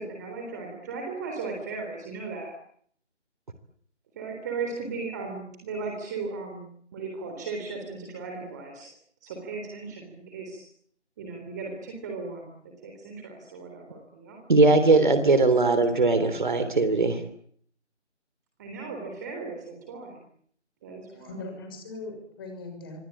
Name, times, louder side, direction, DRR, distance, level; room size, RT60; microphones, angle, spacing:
voice 1, 0.0-2.5 4.2-8.9 9.2-10.7 11.2-12.5 12.8-14.4 18.6-20.2 20.8-21.4, right 4 dB, 15° right, 2 dB, 3.7 m, -36 dB
voice 2, 14.5-17.2, right 3 dB, 45° right, 10 dB, 3.4 m, -20 dB
voice 3, 21.1-23.0, left 3 dB, 20° left, 5 dB, 6.6 m, -40 dB
26.0 x 25.5 x 8.9 m, 0.64 s
figure-of-eight pair, 155°, 35 cm